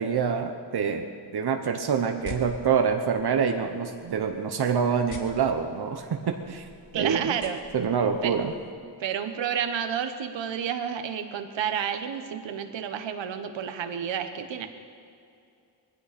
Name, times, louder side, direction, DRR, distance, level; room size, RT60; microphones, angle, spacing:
voice 1, 0.0-6.7 6.9-7.3 7.7-8.5, right 6 dB, 60° right, 5 dB, 1.1 m, -26 dB
sound 1, 2.1-8.7, left 4 dB, 45° left, 1.8 m, -47 dB
voice 2, 6.9-7.6 8.2-8.4 9.0-14.7, right 8 dB, 90° right, 8 dB, 1.3 m, -30 dB
20.0 x 15.5 x 4.3 m, 2.5 s
wide cardioid pair, 120°, 43 cm